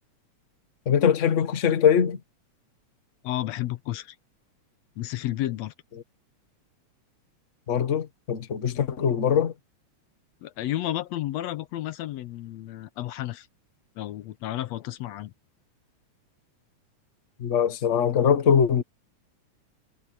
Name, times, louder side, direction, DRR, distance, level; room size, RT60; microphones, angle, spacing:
voice 1, 0.8-2.2 7.7-9.5 17.4-18.8, left 8 dB, 40° left, 1.1 m, -22 dB
voice 2, 3.2-4.2 5.0-5.7 10.4-13.5 14.0-15.3, left 14 dB, 75° left, 1.9 m, -32 dB
omnidirectional pair, 3.3 m